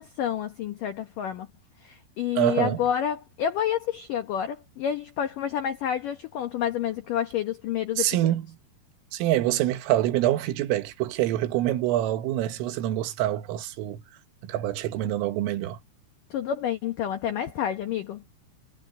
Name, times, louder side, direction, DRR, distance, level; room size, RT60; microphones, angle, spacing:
voice 1, 0.0-1.5 1.8-8.3 16.3-18.2, left 9 dB, 85° left, 1.9 m, -29 dB
voice 2, 2.4-2.8 8.0-8.5 9.1-14.0 14.4-15.8, right 13 dB, 90° right, 4.0 m, -25 dB
omnidirectional pair, 5.7 m